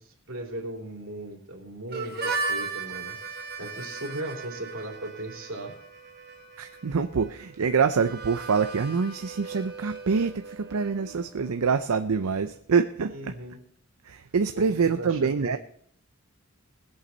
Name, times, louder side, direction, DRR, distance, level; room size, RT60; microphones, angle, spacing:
voice 1, 0.0-5.7 13.1-13.6 14.5-15.6, right 1 dB, 60° right, 0 dB, 3.2 m, -38 dB
Harmonica, 1.9-11.5, right 4 dB, 45° right, 1.5 m, -37 dB
voice 2, 6.6-13.1 14.0-15.6, right 5 dB, 80° right, 9 dB, 0.5 m, -25 dB
20.5 x 8.1 x 4.0 m, 0.64 s
head